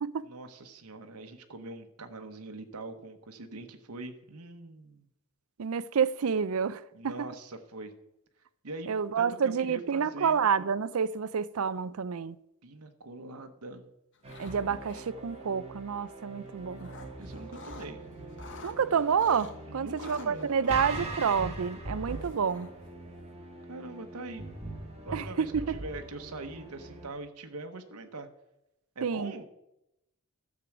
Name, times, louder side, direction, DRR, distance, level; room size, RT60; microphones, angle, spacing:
voice 1, 0.2-5.1 6.9-7.9 8.6-10.4 12.6-13.9 17.2-18.0 19.7-20.5 23.7-24.5 25.0-28.3 28.9-29.4, right 2 dB, 85° right, 1.1 m, -43 dB
voice 2, 5.6-7.1 8.9-12.4 14.4-16.9 18.6-22.7 25.1-25.7 29.0-29.3, right 6 dB, 65° right, 0.5 m, -29 dB
sound 1, 14.2-14.6 14.8-15.4 16.4-17.9 18.2-19.5 20.0-22.9, left 4 dB, 55° left, 1.5 m, -49 dB
sound 2, 14.2-27.1, right 2 dB, 30° right, 1.9 m, -42 dB
12.0 x 7.6 x 6.0 m
head